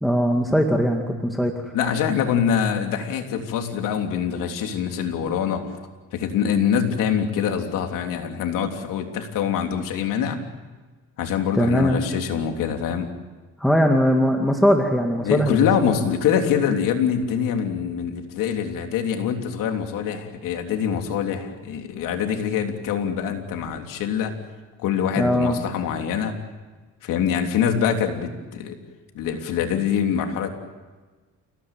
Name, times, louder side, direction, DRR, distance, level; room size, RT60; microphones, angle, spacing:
voice 1, 0.0-1.7 11.5-12.0 13.6-15.6 25.2-25.6, equal, ahead, 2 dB, 2.1 m, -20 dB
voice 2, 1.7-5.7 6.1-10.4 11.2-13.1 15.2-24.3 24.8-26.4 27.0-28.8 29.2-30.5, left 8 dB, 90° left, 4 dB, 3.4 m, -24 dB
29.5 x 17.5 x 9.2 m, 1.3 s
cardioid pair, 130°, 31 cm